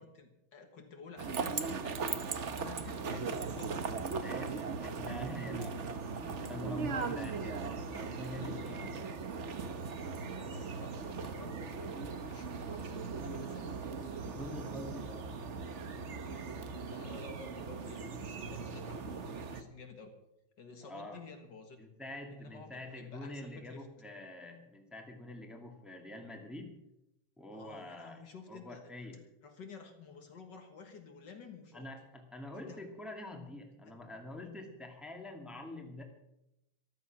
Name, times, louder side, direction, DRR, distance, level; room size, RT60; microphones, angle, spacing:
voice 1, 0.0-2.2 2.5-4.1 6.8-7.1 7.9-8.1 8.4-9.1 10.3-13.9 16.9-20.1 20.6-21.8 22.3-23.9 27.5-28.9 29.4-31.9 32.5-32.9 33.9-34.0, left 4 dB, 60° left, 6 dB, 2.0 m, -52 dB
sound 1, 1.2-19.6, right 5 dB, 45° right, 1.0 m, -39 dB
voice 2, 4.1-9.1 14.1-15.7 20.8-21.2 21.8-26.8 27.4-28.2 28.5-29.2 31.7-36.0, left 1 dB, ahead, 2 dB, 2.0 m, -46 dB
14.0 x 13.0 x 6.0 m, 0.87 s
omnidirectional pair, 2.3 m